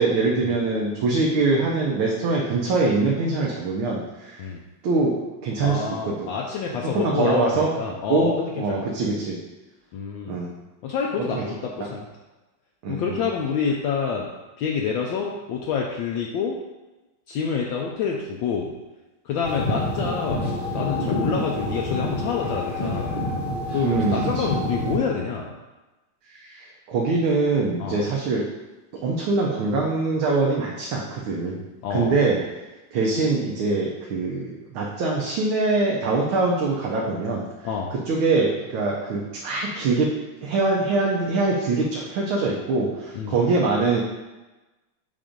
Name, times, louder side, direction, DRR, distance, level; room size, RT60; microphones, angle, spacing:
voice 1, 0.0-4.5 4.8-6.3 6.9-7.7 8.1-9.4 10.3-10.5 11.3-11.4 12.8-13.3 23.8-24.6 26.3-28.4 29.0-32.4 32.9-37.4 37.9-40.1 40.4-44.0, right 3 dB, 75° right, -3 dB, 1.5 m, -23 dB
voice 2, 5.6-8.9 9.9-10.4 10.8-12.1 12.9-14.3 14.6-16.6 17.3-18.7 19.2-23.2 23.7-25.5 27.8-28.0 31.8-32.1 37.6-37.9 43.1-43.4, left 6 dB, 75° left, -1 dB, 1.2 m, -27 dB
sound 1, 19.4-25.0, left 1 dB, 35° left, 0.9 m, -27 dB
7.3 x 2.5 x 5.0 m, 1.1 s
omnidirectional pair, 2.3 m